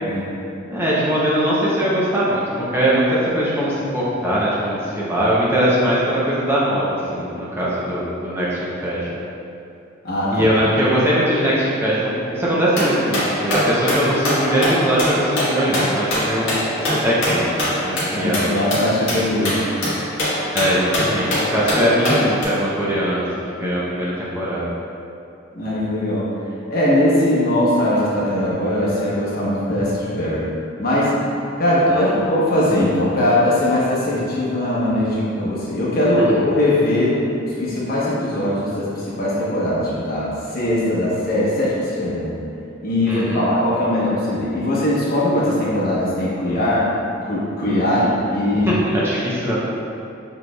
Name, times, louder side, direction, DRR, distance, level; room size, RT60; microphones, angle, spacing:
voice 1, 0.7-9.1 10.3-18.6 20.5-23.2 23.5-24.6 31.9-32.1 36.2-36.4 43.1-43.5 48.5-49.6, equal, 10° right, -7 dB, 0.6 m, -21 dB
voice 2, 10.0-10.5 18.1-19.7 25.5-26.3 26.7-30.5 30.8-31.1 31.6-37.1 37.4-42.3 42.8-46.8 47.2-48.7, left 1 dB, 50° left, -7 dB, 1.0 m, -20 dB
sound 1, 12.7-22.4, left 1 dB, 85° left, 1.4 m, -23 dB
6.2 x 3.3 x 2.3 m, 2.7 s
head